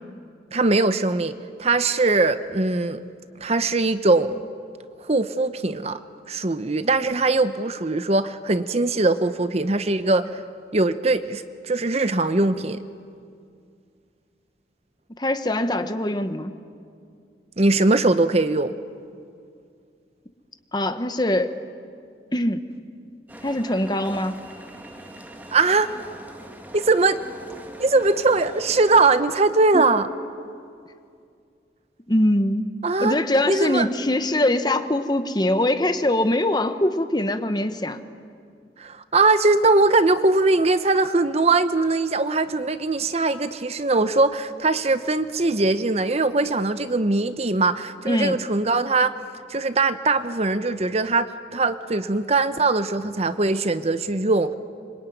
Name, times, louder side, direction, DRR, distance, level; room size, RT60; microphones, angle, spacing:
voice 1, 0.5-3.0 3.4-4.4 5.1-6.0 6.3-10.4 10.7-12.8 17.6-18.7 25.5-25.9 26.7-27.2 27.8-30.1 32.8-33.2 33.5-33.9 38.8-49.1 49.5-54.5, right 3 dB, 35° right, 11 dB, 0.8 m, -21 dB
voice 2, 15.2-16.6 20.7-21.5 22.3-22.7 23.4-24.4 29.7-29.9 32.1-32.7 33.0-38.0 48.0-48.4, left 1 dB, 25° left, 9 dB, 1.1 m, -23 dB
sound 1, 23.3-29.2, right 1 dB, 10° right, 1.7 m, -42 dB
26.0 x 24.5 x 9.4 m, 2.3 s
head